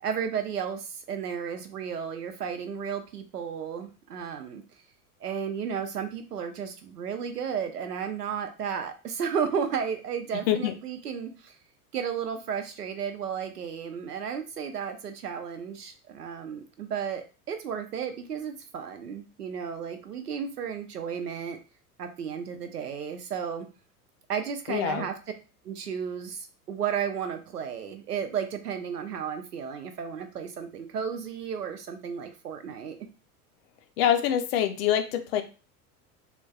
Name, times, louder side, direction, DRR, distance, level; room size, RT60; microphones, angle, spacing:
voice 1, 0.0-4.6 5.2-11.5 11.9-21.6 22.0-23.7 24.3-25.1 25.6-33.0, right 7 dB, 85° right, 7 dB, 0.6 m, -33 dB
voice 2, 24.7-25.1 34.0-35.4, left 10 dB, 40° left, 7 dB, 0.4 m, -25 dB
3.2 x 2.1 x 2.3 m, 0.33 s
figure-of-eight pair, 85°, 45 cm